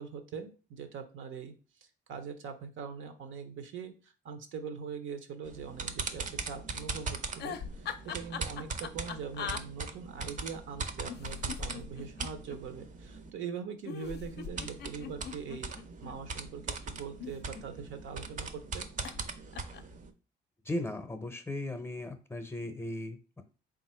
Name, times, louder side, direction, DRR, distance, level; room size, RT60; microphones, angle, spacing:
voice 1, 0.0-18.9, right 6 dB, 80° right, 9 dB, 0.7 m, -42 dB
sound 1, 5.4-13.3 14.3-20.1, right 4 dB, 40° right, 0.5 m, -40 dB
sound 2, 7.3-9.6 11.0-12.6 13.8-16.2 17.0-18.0 19.0-19.3 19.5-19.9, left 7 dB, 55° left, 0.4 m, -41 dB
voice 2, 20.6-23.4, left 1 dB, 10° left, 7 dB, 0.6 m, -37 dB
3.6 x 2.5 x 4.3 m, 0.34 s
cardioid pair, 90°, 20 cm